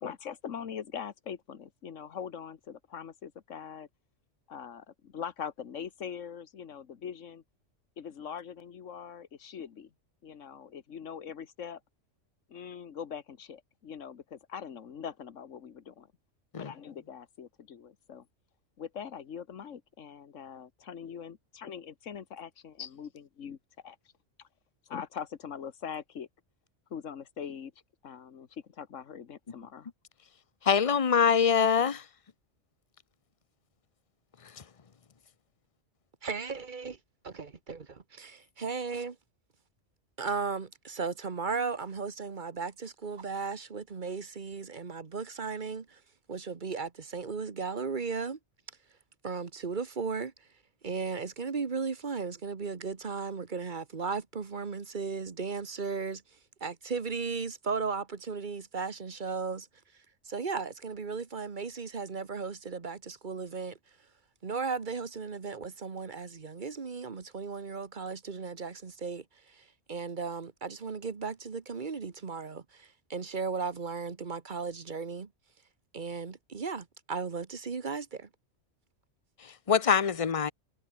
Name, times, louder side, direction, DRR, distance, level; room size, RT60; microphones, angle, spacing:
voice 1, 0.0-3.9 4.5-7.4 8.0-9.9 10.2-11.8 12.5-16.1 16.5-18.3 18.8-23.6 23.8-24.0 24.9-26.3 26.9-27.7 28.0-29.9 30.2-30.3, left 7 dB, 85° left, 1.6 m, -42 dB
voice 2, 30.6-32.0 79.4-80.5, left 7 dB, 30° left, 0.9 m, -24 dB
voice 3, 36.2-37.0 37.2-39.2 40.2-46.0 46.3-48.4 49.2-50.3 50.8-56.2 56.6-59.7 60.2-63.8 64.4-75.3 75.9-78.3, right 5 dB, 40° right, 1.4 m, -36 dB
omnidirectional pair, 1.3 m